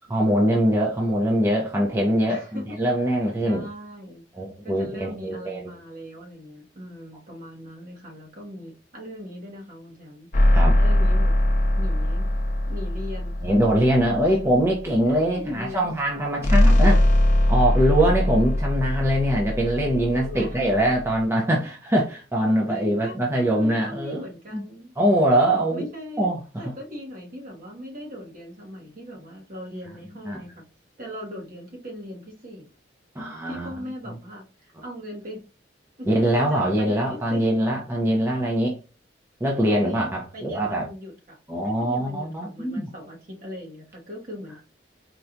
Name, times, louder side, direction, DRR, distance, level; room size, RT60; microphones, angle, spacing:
voice 1, 0.1-3.6 4.3-5.6 10.5-10.8 13.4-17.0 17.5-24.2 24.5-24.6 25.0-25.9 26.2-26.4 26.6-26.7 30.3-30.4 33.2-33.7 36.1-38.8 39.4-40.9 41.5-42.9, right 1 dB, 15° right, 0.6 m, -23 dB
voice 2, 2.3-2.7 3.4-4.2 4.6-10.3 10.8-11.3 11.8-12.3 12.7-13.4 14.1-14.5 15.3-15.9 19.6-19.7 20.1-20.6 21.5-21.7 22.7-24.9 25.3-26.3 26.6-30.6 31.0-32.7 33.5-35.4 36.0-37.5 39.7-41.4 41.6-44.6, equal, 50° right, 1.1 m, -39 dB
sound 1, 10.3-14.9 16.4-21.2, left 1 dB, 45° left, 0.6 m, -21 dB
4.3 x 2.3 x 2.5 m
head